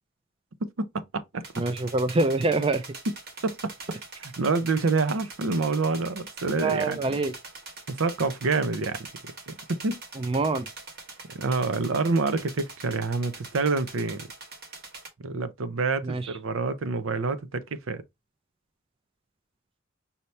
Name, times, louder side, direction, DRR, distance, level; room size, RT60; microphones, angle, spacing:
voice 1, 0.6-1.6 3.1-3.2 3.4-7.2 7.9-9.1 9.5-10.0 11.3-14.3 15.2-18.0, right 3 dB, 75° right, 0.6 m, -27 dB
sound 1, 1.4-15.1, right 3 dB, 50° right, 1.4 m, -44 dB
voice 2, 1.6-2.8 6.6-7.3 10.2-10.7 16.0-16.3, right 2 dB, 25° right, 0.4 m, -25 dB
5.5 x 2.8 x 3.2 m
head